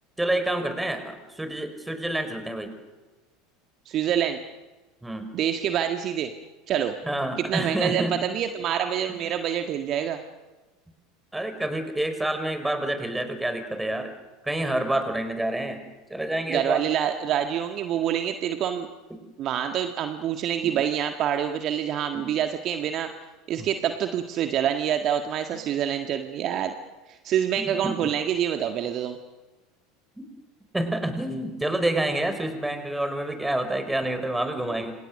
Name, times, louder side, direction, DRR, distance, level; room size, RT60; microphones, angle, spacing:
voice 1, 0.2-2.7 5.0-5.3 7.0-8.2 9.1-9.2 11.3-14.1 14.4-15.8 16.1-16.8 19.1-19.2 20.6-20.8 22.1-22.3 23.6-23.7 27.6-28.0 30.2-30.3 30.7-34.9, right 1 dB, 5° right, 8 dB, 5.3 m, -28 dB
voice 2, 3.8-4.4 5.3-6.3 6.7-6.9 7.4-10.2 16.5-18.9 19.4-23.1 23.5-26.8 27.1-29.2, right 9 dB, 45° right, 6 dB, 1.6 m, -26 dB
29.5 x 27.5 x 6.6 m, 1.2 s
figure-of-eight pair, 75°, 0 cm